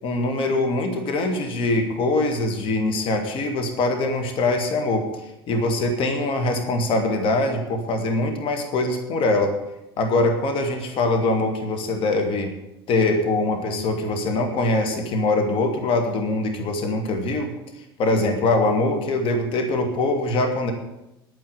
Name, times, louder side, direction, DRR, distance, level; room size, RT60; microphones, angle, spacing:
voice 1, 0.0-9.5 10.0-12.5 12.9-17.5 18.0-20.7, left 2 dB, 45° left, 6 dB, 2.4 m, -23 dB
10.5 x 9.2 x 8.9 m, 0.93 s
figure-of-eight pair, 75°, 13 cm